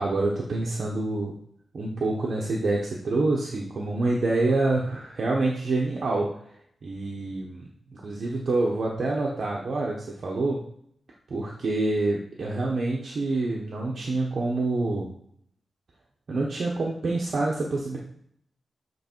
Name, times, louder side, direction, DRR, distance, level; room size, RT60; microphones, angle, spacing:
voice 1, 0.0-1.3 1.7-6.3 6.8-7.6 7.9-10.6 11.3-15.1 16.3-18.0, right 2 dB, 50° right, -3 dB, 0.9 m, -27 dB
8.0 x 3.1 x 4.5 m, 0.69 s
wide cardioid pair, 170°, 0 cm